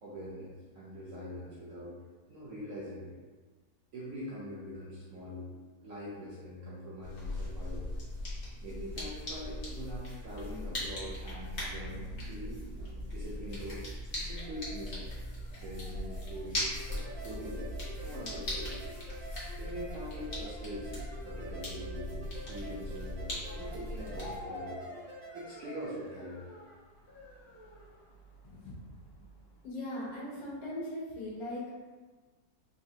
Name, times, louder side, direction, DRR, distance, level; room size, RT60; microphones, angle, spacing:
voice 1, 0.0-2.0 2.3-3.1 3.9-7.9 8.6-13.8 14.1-15.1 15.6-24.9 25.3-26.6, equal, 65° right, -7 dB, 0.8 m, -43 dB
sound 1, 7.0-24.4, left 1 dB, 45° left, 0.8 m, -39 dB
sound 2, 10.6-29.7, left 2 dB, 70° left, 1.0 m, -53 dB
sound 3, 16.8-25.5, right 1 dB, 90° right, 1.5 m, -48 dB
voice 2, 28.4-28.8 29.6-31.7, left 1 dB, 85° left, -6 dB, 1.6 m, -39 dB
3.8 x 2.4 x 2.6 m, 1.4 s
omnidirectional pair, 2.0 m